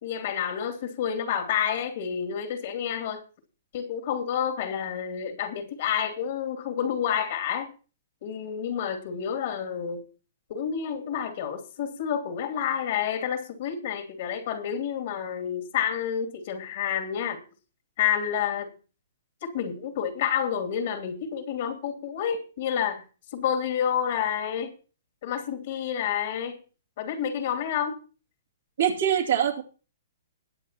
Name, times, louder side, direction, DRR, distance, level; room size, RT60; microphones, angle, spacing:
voice 1, 0.0-3.2 3.7-7.7 8.2-10.0 10.5-17.4 18.0-18.7 19.4-23.0 23.3-24.7 25.2-26.6 27.0-28.0, left 8 dB, 55° left, 2.6 m, -29 dB
voice 2, 28.8-29.6, right 9 dB, 70° right, 2.7 m, -23 dB
21.5 x 7.5 x 2.9 m
hypercardioid pair, 125°, 0 cm